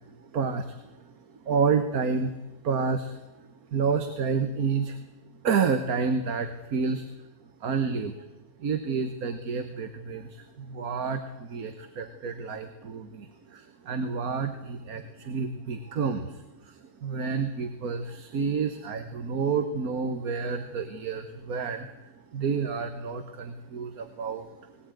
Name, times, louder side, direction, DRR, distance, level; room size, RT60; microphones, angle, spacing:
voice 1, 0.2-1.0 1.4-2.3 2.6-5.0 5.4-7.1 7.6-8.2 8.6-24.7, right 5 dB, 70° right, 8 dB, 1.7 m, -30 dB
20.0 x 19.0 x 9.1 m, 1.0 s
omnidirectional pair, 1.6 m